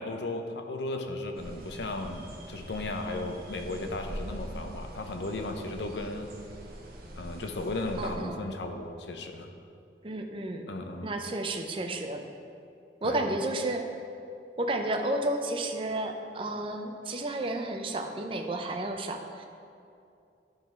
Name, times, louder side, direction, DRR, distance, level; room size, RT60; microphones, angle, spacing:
voice 1, 0.0-6.3 7.2-9.5 10.7-11.1 13.0-13.2, left 2 dB, 75° left, 5 dB, 0.7 m, -35 dB
sound 1, 1.4-8.2, right 1 dB, 55° right, 1.0 m, -43 dB
voice 2, 8.0-8.4 10.0-10.6 11.0-12.2 13.0-14.0 14.6-19.4, right 1 dB, 30° right, 4 dB, 0.5 m, -32 dB
11.0 x 3.9 x 4.4 m, 2.6 s
head